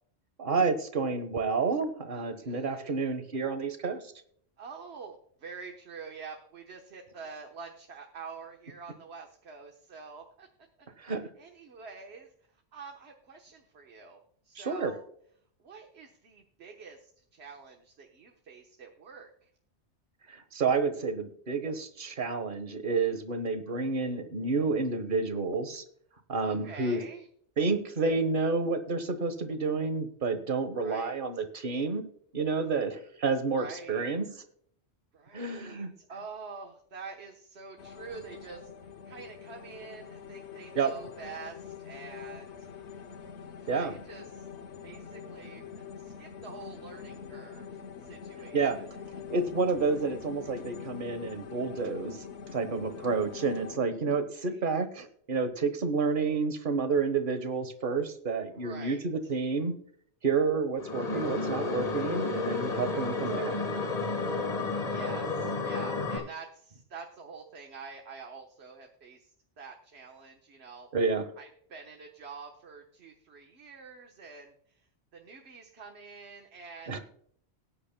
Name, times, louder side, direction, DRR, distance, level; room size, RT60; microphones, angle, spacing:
voice 1, 0.4-4.0 11.0-11.2 14.5-14.9 20.3-25.8 26.3-27.0 27.6-32.0 32.3-34.2 35.3-35.9 40.7-40.9 43.7-43.9 48.5-48.8 49.3-52.2 52.5-59.7 60.2-63.6 70.9-71.3 76.9-77.0, right 4 dB, 50° right, 9 dB, 1.4 m, -29 dB
voice 2, 2.1-2.9 4.6-10.5 11.0-11.1 11.4-15.0 15.6-19.5 26.4-27.3 30.7-31.2 33.6-34.1 35.1-42.5 43.6-44.5 44.8-48.9 54.4-55.0 58.5-59.1 62.8-63.1 64.8-70.9 71.4-74.8 75.1-77.0, right 5 dB, 75° right, 3 dB, 1.5 m, -47 dB
sound 1, 37.8-53.8, left 7 dB, 85° left, 1.2 m, -45 dB
sound 2, 60.8-66.2, left 3 dB, 35° left, 1.6 m, -31 dB
19.0 x 9.7 x 2.2 m, 0.62 s
omnidirectional pair, 1.1 m